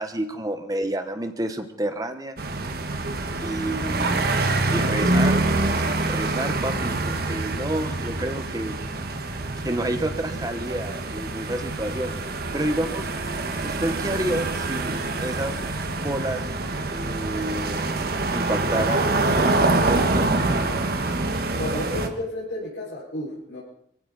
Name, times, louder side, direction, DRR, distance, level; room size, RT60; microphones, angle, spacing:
voice 1, 0.0-2.4 3.4-4.3 4.7-5.4 5.7-8.8 9.6-12.1 12.5-13.1 13.6-15.7 16.0-16.5 16.9-20.3, right 1 dB, 20° right, 8 dB, 1.1 m, -30 dB
sound 1, 2.4-22.1, right 2 dB, 55° right, 1.4 m, -25 dB
voice 2, 21.6-23.6, left 1 dB, 80° left, -7 dB, 5.8 m, -32 dB
22.5 x 15.5 x 4.1 m, 0.72 s
head